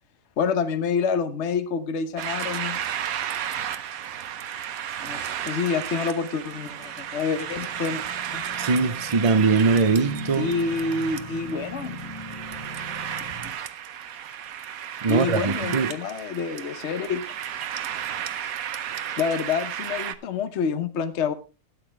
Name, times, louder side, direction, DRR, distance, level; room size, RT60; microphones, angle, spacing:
voice 1, 0.4-2.8 5.0-8.0 8.3-8.4 10.4-12.1 13.4-13.5 15.1-17.3 19.2-21.3, left 5 dB, 55° left, 1.2 m, -27 dB
sound 1, 2.2-20.2, right 10 dB, 75° right, 1.2 m, -33 dB
sound 2, 6.4-13.5, left 1 dB, 25° left, 1.8 m, -41 dB
voice 2, 8.6-10.5 15.0-15.9, right 4 dB, 35° right, 0.6 m, -21 dB
12.5 x 9.5 x 3.2 m
omnidirectional pair, 1.5 m